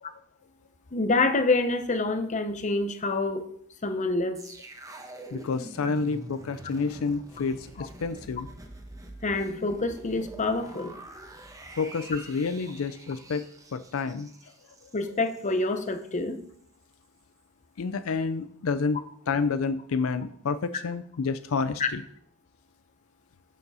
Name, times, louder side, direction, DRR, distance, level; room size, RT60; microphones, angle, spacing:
voice 1, 0.9-3.5 3.8-4.4 9.2-11.0 14.9-16.4 21.8-21.9, left 3 dB, 35° left, 9 dB, 0.8 m, -27 dB
sound 1, 4.3-15.5 15.9-16.0, right 1 dB, 15° right, 1.0 m, -45 dB
voice 2, 5.3-8.5 11.8-13.4 13.7-14.3 17.8-22.0, left 4 dB, 75° left, 12 dB, 0.5 m, -29 dB
7.3 x 6.7 x 5.5 m, 0.63 s
head